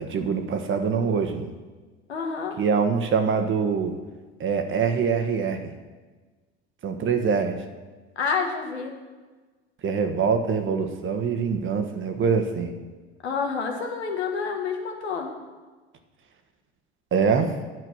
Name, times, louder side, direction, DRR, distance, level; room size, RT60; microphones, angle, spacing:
voice 1, 0.0-1.5 2.6-3.9 4.4-5.7 6.8-7.6 9.8-12.7 17.1-17.6, right 6 dB, 40° right, 7 dB, 1.4 m, -24 dB
voice 2, 2.1-2.6 8.1-8.9 13.2-15.3, left 5 dB, 85° left, 2 dB, 1.6 m, -28 dB
9.5 x 7.5 x 6.3 m, 1.3 s
hypercardioid pair, 75°, 32 cm